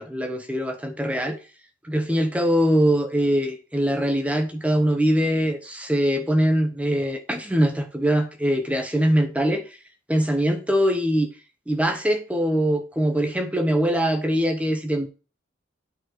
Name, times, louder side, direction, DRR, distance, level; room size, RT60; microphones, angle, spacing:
voice 1, 0.0-1.4 1.8-9.7 10.1-11.3 11.7-15.1, equal, 5° right, 0.9 m, -22 dB
9.2 x 4.5 x 4.5 m
head